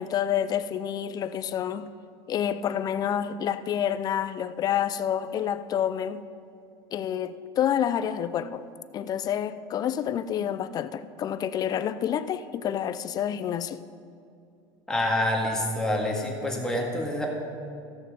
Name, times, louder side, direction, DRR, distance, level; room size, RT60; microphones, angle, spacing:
voice 1, 0.0-1.9 2.3-6.2 6.9-8.6 8.9-13.8, left 9 dB, 35° left, 0.5 m, -28 dB
voice 2, 14.9-17.3, left 1 dB, 5° left, 1.9 m, -27 dB
15.0 x 6.6 x 5.1 m
supercardioid pair, 125°, 11 cm